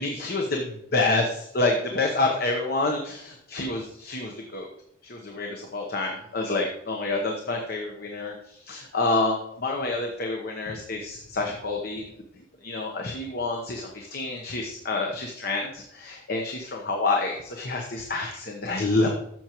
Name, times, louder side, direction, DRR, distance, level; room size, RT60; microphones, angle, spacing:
voice 1, 0.0-4.7 5.1-12.1 12.6-19.1, left 2 dB, 50° left, 1 dB, 1.0 m, -28 dB
12.0 x 7.2 x 3.0 m, 0.77 s
head